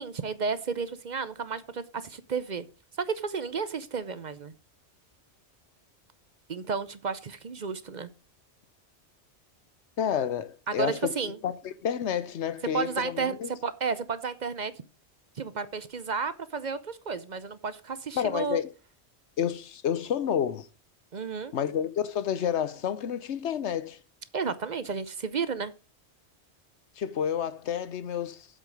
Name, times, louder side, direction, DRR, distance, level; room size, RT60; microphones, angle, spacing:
voice 1, 0.0-2.7 3.0-4.5 6.5-8.1 10.7-11.4 12.7-14.7 15.4-18.6 21.1-21.5 24.3-25.7, right 5 dB, 45° right, 0.7 m, -32 dB
voice 2, 10.0-11.1 11.4-13.5 18.1-18.7 19.4-20.7 21.5-24.0 27.0-28.5, left 9 dB, 90° left, 1.1 m, -30 dB
8.2 x 7.6 x 5.2 m
omnidirectional pair, 1.1 m